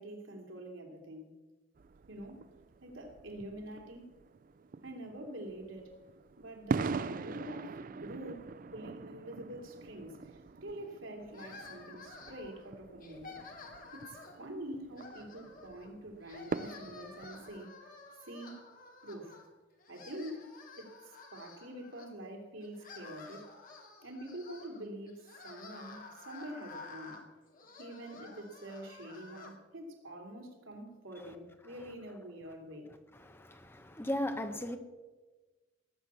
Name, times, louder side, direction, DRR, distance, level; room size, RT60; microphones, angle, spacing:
voice 1, 0.0-1.4 2.1-2.5 2.8-4.1 4.8-5.9 6.4-13.4 13.9-17.7 18.2-18.7 19.0-19.4 19.9-23.5 24.0-27.2 27.8-32.9, right 1 dB, 90° right, 2 dB, 3.1 m, -46 dB
sound 1, 1.8-17.7, right 4 dB, 45° right, 0.4 m, -43 dB
sound 2, 11.3-12.6 13.0-14.5 14.9-15.9 16.2-19.5 19.8-22.1 22.6-29.6, left 3 dB, 45° left, 2.2 m, -51 dB
voice 2, 33.2-34.8, left 1 dB, 10° left, 7 dB, 1.0 m, -36 dB
18.0 x 8.4 x 6.9 m, 1.2 s
head